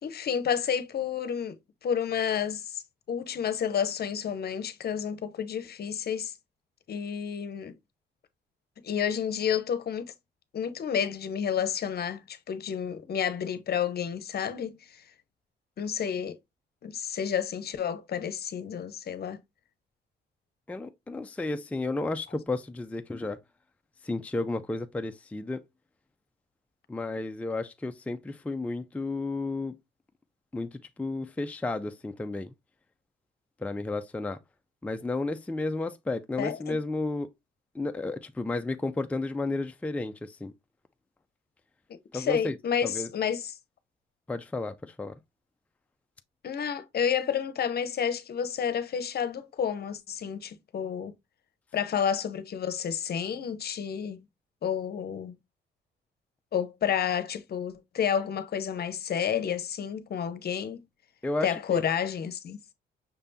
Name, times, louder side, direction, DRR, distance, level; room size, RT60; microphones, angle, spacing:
voice 1, 0.0-1.6 1.8-2.8 3.1-6.3 6.9-7.7 8.8-10.1 10.5-15.0 15.8-16.4 16.8-19.4 36.4-36.8 41.9-43.6 46.4-51.1 51.7-54.2 54.6-55.3 56.5-60.8 61.4-62.6, left 8 dB, 50° left, 0.8 m, -30 dB
voice 2, 20.7-23.4 24.0-25.6 26.9-29.7 30.5-32.5 33.6-34.4 34.8-37.3 37.7-40.5 42.1-42.6 42.8-43.1 44.3-45.2 61.2-61.8, left 2 dB, 5° left, 0.4 m, -32 dB
5.9 x 3.4 x 2.7 m
cardioid pair, 90°, 20 cm